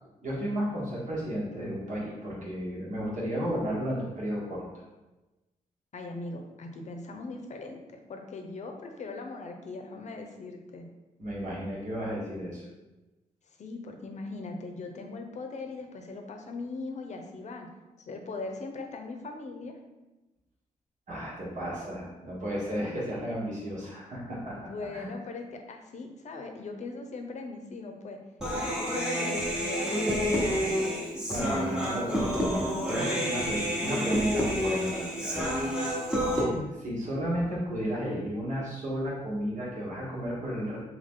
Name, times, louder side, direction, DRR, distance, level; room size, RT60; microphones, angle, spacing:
voice 1, 0.2-4.8 11.2-12.6 21.1-25.1 31.3-35.4 35.7-36.0 36.3-36.5 36.8-40.8, equal, 60° right, -5 dB, 1.5 m, -33 dB
voice 2, 5.9-10.9 13.6-17.7 18.0-19.8 24.6-28.2 28.5-31.0 36.2-36.7, left 3 dB, 55° left, 4 dB, 0.6 m, -40 dB
Human voice, 28.4-36.4, equal, 5° right, 1.0 m, -29 dB
3.6 x 3.0 x 3.6 m, 1.1 s
cardioid pair, 90°, 14 cm